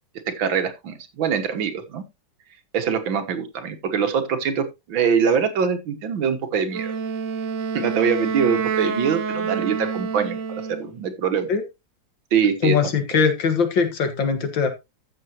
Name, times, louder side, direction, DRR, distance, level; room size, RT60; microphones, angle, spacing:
voice 1, 0.3-2.0 2.7-6.9 7.7-11.5 12.3-12.8, right 6 dB, 90° right, 8 dB, 2.1 m, -23 dB
Wind instrument woodwind instrument, 6.7-10.9, right 6 dB, 60° right, 0.9 m, -27 dB
voice 2, 12.6-14.7, left 5 dB, 75° left, 8 dB, 2.3 m, -21 dB
13.5 x 6.8 x 2.9 m, 0.23 s
omnidirectional pair, 2.1 m